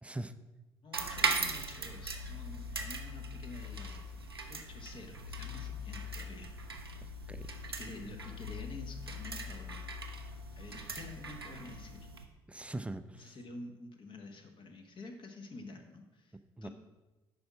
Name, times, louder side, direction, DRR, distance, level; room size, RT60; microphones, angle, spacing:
voice 1, 0.0-0.3 7.0-7.5 12.5-13.4 16.6-16.7, right 1 dB, 10° right, 10 dB, 0.5 m, -42 dB
voice 2, 0.8-6.7 7.8-9.8 10.2-10.3 10.5-12.1 13.1-16.7, left 3 dB, 40° left, 4 dB, 1.4 m, -49 dB
sound 1, 0.9-12.2, right 2 dB, 90° right, 0.6 m, -39 dB
10.5 x 4.3 x 6.1 m, 1.1 s
figure-of-eight pair, 50°, 12 cm